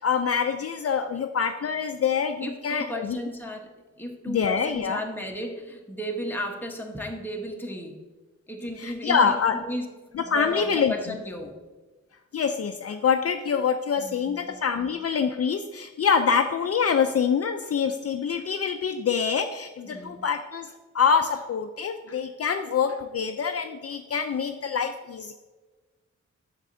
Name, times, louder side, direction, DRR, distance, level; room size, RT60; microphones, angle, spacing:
voice 1, 0.0-3.2 4.3-5.0 8.8-9.6 10.1-11.2 12.3-25.3, left 6 dB, 55° left, 7 dB, 0.4 m, -25 dB
voice 2, 2.4-3.7 4.0-8.0 8.5-9.9 10.1-11.6 14.0-14.9 19.8-20.2, equal, 5° left, 1 dB, 1.1 m, -34 dB
8.2 x 6.5 x 2.6 m, 1.3 s
wide cardioid pair, 90°, 29 cm